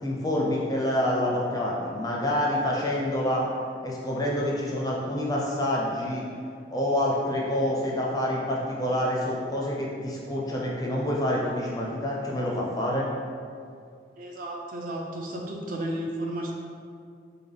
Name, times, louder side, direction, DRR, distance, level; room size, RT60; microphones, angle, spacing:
voice 1, 0.0-3.4 3.8-6.3 6.7-13.1, left 1 dB, 20° left, -3 dB, 0.4 m, -27 dB
voice 2, 14.2-16.5, right 1 dB, 50° right, -1 dB, 0.4 m, -33 dB
3.3 x 2.2 x 3.6 m, 2.3 s
head